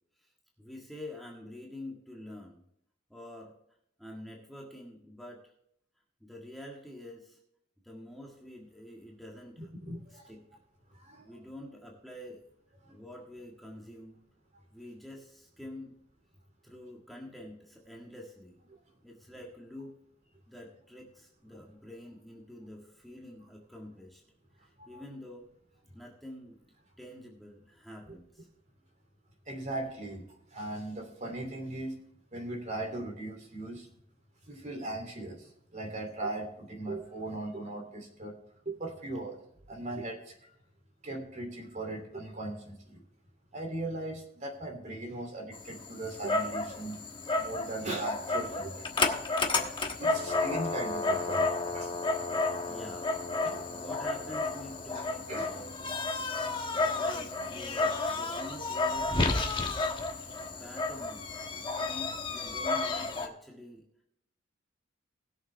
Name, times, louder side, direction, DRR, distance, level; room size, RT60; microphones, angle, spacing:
voice 1, 0.6-2.6 3.1-3.6 4.0-5.5 6.2-7.4 7.8-9.7 10.1-10.4 11.2-12.5 12.9-14.2 14.7-15.9 16.6-18.6 19.0-20.0 20.5-24.2 24.6-25.5 25.9-28.5 52.6-53.2 53.7-56.0 56.4-59.6 60.6-61.3 61.8-63.9, left 1 dB, ahead, -3 dB, 1.7 m, -47 dB
voice 2, 9.6-10.3 10.9-11.3 12.8-12.9 18.7-18.8 24.8-25.0 28.1-28.2 29.5-30.2 30.5-32.0 32.3-33.9 34.5-38.4 38.6-39.4 39.7-40.3 41.0-43.0 43.5-47.0 47.4-48.9 49.7-51.9 52.2-52.3 53.4-53.7 54.9-55.5, right 2 dB, 40° right, 3 dB, 3.0 m, -39 dB
Dog, 45.5-63.3, left 3 dB, 25° left, 1.2 m, -31 dB
20.0 x 7.2 x 3.4 m, 0.72 s
head